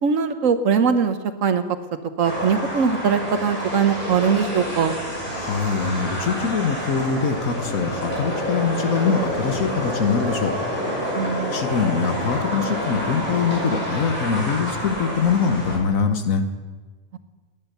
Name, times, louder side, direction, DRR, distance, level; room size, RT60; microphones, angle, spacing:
voice 1, 0.0-1.6 2.2-4.9 11.1-11.6, right 6 dB, 75° right, 9 dB, 1.3 m, -21 dB
sound 1, 2.2-15.8, equal, 40° left, 6.2 m, -28 dB
voice 2, 5.3-10.6 11.5-16.4, left 5 dB, 85° left, 7 dB, 1.7 m, -23 dB
19.5 x 9.7 x 6.9 m, 1.3 s
omnidirectional pair, 1.4 m